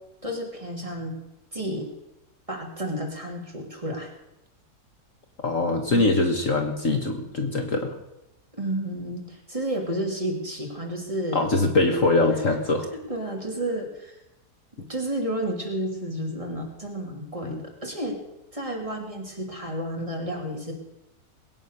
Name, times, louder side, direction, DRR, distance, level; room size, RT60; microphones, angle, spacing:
voice 1, 0.2-1.2 1.5-1.9 2.5-4.1 5.9-6.1 8.5-11.5 12.3-12.6 13.1-14.1 14.9-18.2 18.5-20.7, right 1 dB, 20° right, 0 dB, 3.0 m, -31 dB
voice 2, 5.4-7.9 11.3-12.9 17.4-17.6, left 2 dB, 50° left, 4 dB, 1.7 m, -23 dB
21.0 x 9.2 x 6.7 m, 0.89 s
omnidirectional pair, 1.9 m